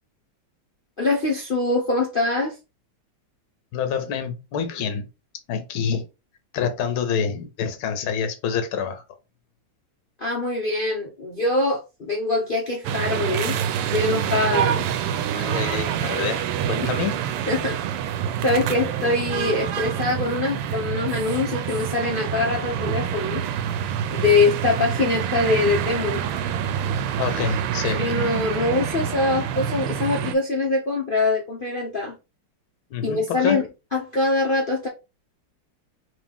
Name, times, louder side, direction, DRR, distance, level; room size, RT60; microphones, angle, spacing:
voice 1, 1.0-2.5 10.2-13.6 13.9-14.8 16.8-16.9 17.5-17.8 18.4-23.4 24.1-26.2 27.8-32.2 33.0-33.6 33.9-34.9, left 3 dB, 90° left, 0.4 m, -23 dB
voice 2, 3.7-5.1 5.5-6.0 6.5-9.0 15.1-16.4 16.7-17.2 27.2-28.0 32.9-33.6, left 7 dB, 70° left, 1.7 m, -27 dB
sound 1, 12.8-30.3, right 9 dB, 85° right, 1.5 m, -26 dB
3.9 x 3.3 x 3.5 m
omnidirectional pair, 2.4 m